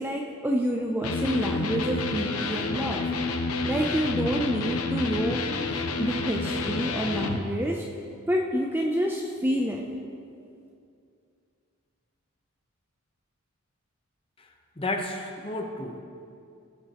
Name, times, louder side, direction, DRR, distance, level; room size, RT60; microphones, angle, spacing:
voice 1, 0.0-3.0 3.6-5.4 6.0-7.8 8.3-9.8, equal, 10° right, 1 dB, 0.5 m, -28 dB
Electric guitar, 1.0-7.4, left 3 dB, 85° left, 0.8 m, -29 dB
voice 2, 14.8-16.0, left 2 dB, 25° left, 3 dB, 0.9 m, -32 dB
17.5 x 8.4 x 3.0 m, 2.5 s
head